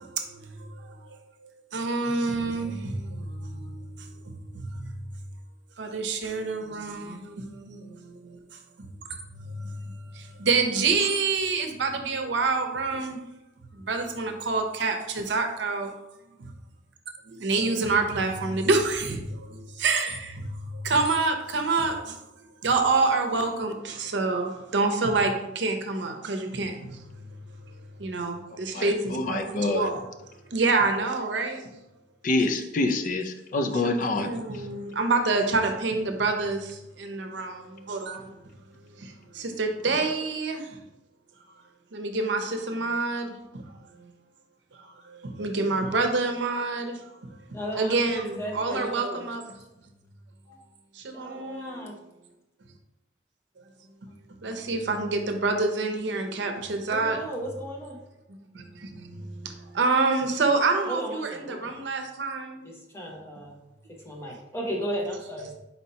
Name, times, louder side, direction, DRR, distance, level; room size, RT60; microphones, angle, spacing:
voice 1, 0.0-4.8 5.8-8.4 8.8-8.9 9.3-13.2 13.7-15.9 16.4-16.5 17.3-22.2 22.6-27.3 28.0-30.0 30.5-31.7 33.8-38.4 38.9-40.8 41.9-44.1 44.8-47.3 47.8-49.4 50.9-51.9 53.6-53.7 54.0-54.1 54.4-57.2 58.3-62.6, right 3 dB, 80° right, 5 dB, 0.6 m, -28 dB
voice 2, 28.7-29.9 32.2-34.3 34.5-34.6 39.9-40.0, left 2 dB, 45° left, 6 dB, 0.4 m, -26 dB
voice 3, 47.5-49.2 50.5-50.6 51.1-52.0 56.9-58.0 60.9-61.7 62.6-63.6 63.9-65.5, right 1 dB, 15° left, -1 dB, 0.7 m, -35 dB
4.3 x 2.8 x 4.2 m, 0.91 s
head